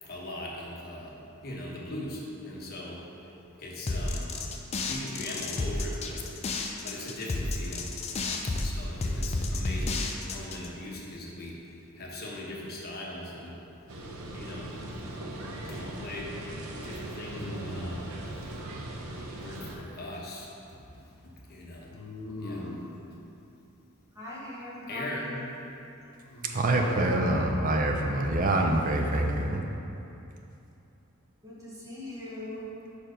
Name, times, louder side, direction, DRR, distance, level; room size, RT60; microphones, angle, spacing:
voice 1, 0.0-1.1 1.4-3.0 3.6-4.3 4.9-6.2 6.8-7.9 8.4-10.0 10.3-11.5 12.0-13.6 14.3-14.7 15.5-16.3 16.7-18.0 19.3-21.9 22.4-22.6 23.1-23.2 24.9-25.3, left 1 dB, 45° left, -3 dB, 1.0 m, -40 dB
sound 1, 3.9-10.7, left 2 dB, 30° left, 0.4 m, -31 dB
sound 2, 13.9-19.8, right 1 dB, 75° right, 0.7 m, -39 dB
sound 3, 14.7-15.1 17.2-18.1 21.9-23.0 26.3-27.5, left 1 dB, 75° left, 0.8 m, -40 dB
voice 2, 24.1-25.5 31.4-32.7, left 1 dB, 15° right, -7 dB, 1.2 m, -40 dB
voice 3, 26.4-29.6, right 2 dB, 40° right, 2 dB, 0.5 m, -26 dB
5.2 x 4.6 x 5.1 m, 2.8 s
head